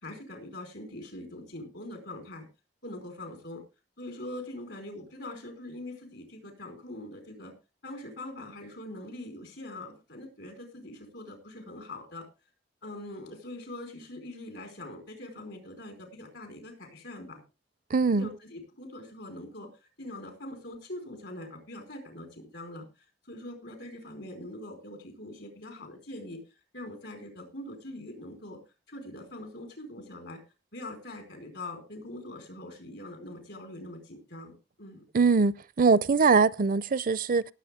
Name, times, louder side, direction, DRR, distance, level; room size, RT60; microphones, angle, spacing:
voice 1, 0.0-2.5 2.8-3.6 4.0-7.5 7.8-12.2 12.8-17.4 18.1-22.9 23.3-26.4 26.7-28.6 28.9-30.4 30.7-35.0, left 1 dB, 75° left, 4.7 m, -43 dB
voice 2, 17.9-18.3 35.1-37.4, right 4 dB, 50° right, 0.5 m, -22 dB
18.5 x 7.6 x 3.6 m
head